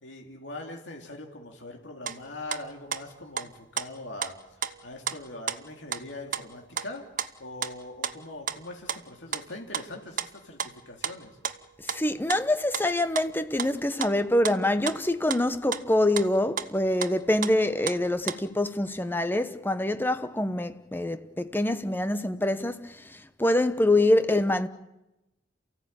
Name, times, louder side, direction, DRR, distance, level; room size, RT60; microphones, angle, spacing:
voice 1, 0.0-7.0 7.4-11.4, left 2 dB, 80° left, 3.0 m, -42 dB
sound 1, 2.1-2.2 2.5-4.3 4.6-5.2 5.5-5.6 5.9-6.0 6.3-6.9 7.2-7.3 7.6-7.7 8.0-8.6 8.9-9.0 9.3-9.5 9.7-10.3 10.6-10.8 11.0-12.4 12.7-12.8 13.1-14.6 14.9-15.4 15.7-16.3 16.6-16.7 17.0-17.1 17.4-18.0 18.3-18.4, right 7 dB, 45° right, 0.9 m, -33 dB
voice 2, 11.8-24.7, left 1 dB, 10° left, 1.0 m, -25 dB
28.5 x 16.5 x 8.9 m
head